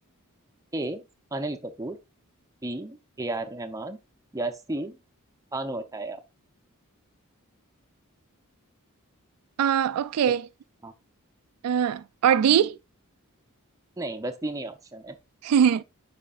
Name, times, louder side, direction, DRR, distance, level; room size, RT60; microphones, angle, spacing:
voice 1, 0.7-1.0 1.3-2.0 2.6-4.0 4.3-5.0 5.5-6.2 10.3-10.4 10.8-10.9 14.0-15.2, right 2 dB, 15° right, 0.6 m, -33 dB
voice 2, 9.6-10.4 11.6-12.8 15.4-15.8, right 8 dB, 80° right, 0.3 m, -21 dB
9.9 x 5.0 x 2.4 m
head